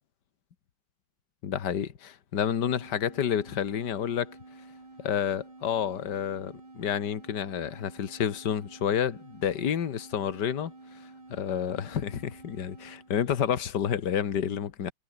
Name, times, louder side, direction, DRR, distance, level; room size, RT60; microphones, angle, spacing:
voice 1, 1.4-4.4 5.0-10.7 11.3-14.9, left 9 dB, 55° left, 2.1 m, -29 dB
sound 1, 2.8-13.2, right 2 dB, 80° right, 7.7 m, -50 dB
omnidirectional pair, 2.2 m